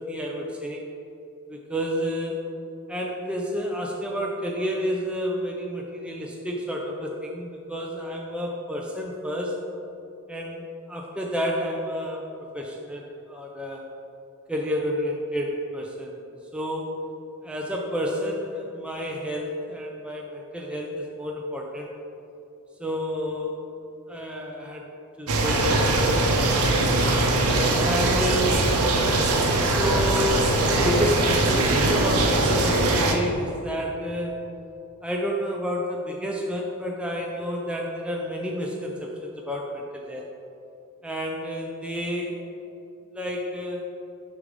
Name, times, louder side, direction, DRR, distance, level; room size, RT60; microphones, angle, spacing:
voice 1, 0.1-0.8 1.5-2.4 2.9-9.6 10.3-12.2 12.5-13.9 14.5-16.2 16.5-17.0 17.4-21.9 22.8-23.5 24.1-24.8 25.2-26.7 27.4-28.7 29.6-34.4 35.0-40.3 41.0-42.4 43.1-43.8, equal, 5° right, -1 dB, 0.4 m, -30 dB
sound 1, 25.3-33.1, right 2 dB, 85° right, 0.7 m, -21 dB
6.5 x 5.1 x 3.6 m, 2.7 s
head